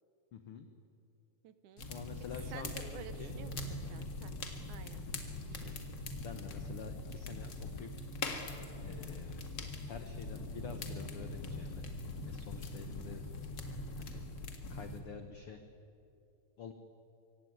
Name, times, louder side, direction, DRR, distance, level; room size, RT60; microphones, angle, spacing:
voice 1, 0.3-0.7 1.9-3.3 5.5-5.8 6.2-7.9 8.8-9.5 9.9-11.9 12.2-13.2 14.0-14.2 14.7-15.6 16.6-16.7, left 6 dB, 70° left, 7 dB, 1.3 m, -48 dB
voice 2, 1.4-1.9 2.5-4.3 4.7-5.0, right 9 dB, 70° right, 12 dB, 2.1 m, -51 dB
sound 1, 1.8-15.0, left 2 dB, 40° left, 1.9 m, -42 dB
24.0 x 17.0 x 9.5 m, 2.7 s
omnidirectional pair, 4.1 m